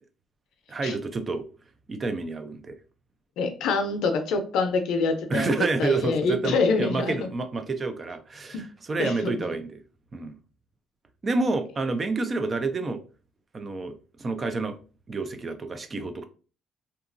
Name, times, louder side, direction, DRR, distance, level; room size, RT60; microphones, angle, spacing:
voice 1, 0.7-1.4 1.9-2.8 5.3-9.8 10.1-10.4 11.2-13.0 13.5-14.8 15.1-16.2, right 3 dB, 35° right, 0.4 m, -29 dB
voice 2, 3.4-5.5 5.8-7.1 8.5-8.6 9.0-9.3, left 4 dB, 80° left, 0.5 m, -25 dB
2.8 x 2.4 x 2.5 m
cardioid pair, 85°, 0 cm